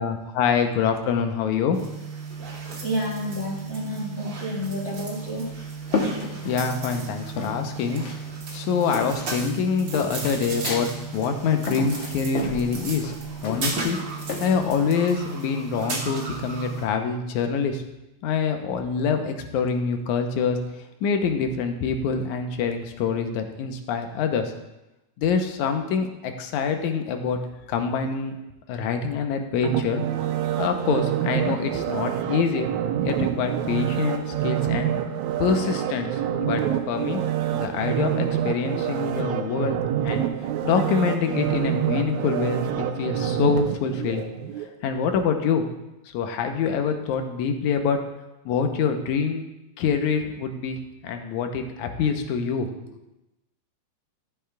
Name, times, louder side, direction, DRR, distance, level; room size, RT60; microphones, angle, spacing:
voice 1, 0.0-1.8 6.4-8.1 8.5-13.1 13.4-14.0 14.4-17.8 18.2-20.6 21.0-24.5 25.2-27.4 27.7-28.4 28.7-30.0 30.6-32.7 33.0-34.9 35.4-37.2 37.5-40.2 40.6-44.3 44.8-45.6 46.1-48.0 48.5-49.4 49.8-53.0, left 6 dB, 85° left, 5 dB, 2.2 m, -25 dB
sound 1, 1.7-16.9, right 4 dB, 50° right, 1.6 m, -35 dB
voice 2, 2.8-5.4 6.3-6.4, equal, 20° left, -9 dB, 2.8 m, -30 dB
sound 2, 5.2-7.0 7.4-8.2 8.5-14.6, left 4 dB, 55° left, 1.5 m, -32 dB
sound 3, 29.6-44.7 45.1-45.2, right 10 dB, 85° right, 2.1 m, -27 dB
13.5 x 8.4 x 2.3 m, 0.96 s
omnidirectional pair, 3.4 m